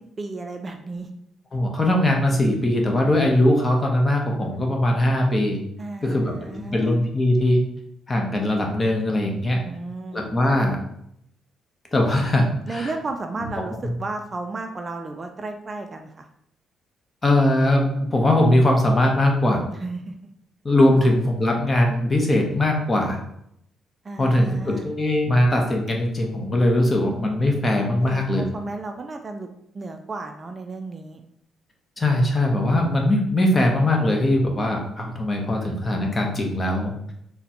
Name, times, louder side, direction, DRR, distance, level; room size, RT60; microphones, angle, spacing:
voice 1, 0.2-1.1 5.8-7.0 9.4-10.3 12.6-16.3 19.7-20.3 20.9-21.1 24.0-24.9 28.0-29.5 29.7-31.2, right 3 dB, 30° right, 5 dB, 0.3 m, -33 dB
voice 2, 1.5-5.6 6.0-7.6 8.1-9.6 10.1-10.8 11.9-12.9 13.4-13.5 13.8-13.9 17.2-19.6 20.6-23.2 24.2-28.4 32.0-37.1, left 1 dB, 25° left, 1 dB, 0.7 m, -20 dB
3.9 x 2.1 x 2.8 m, 0.74 s
cardioid pair, 90°, 0 cm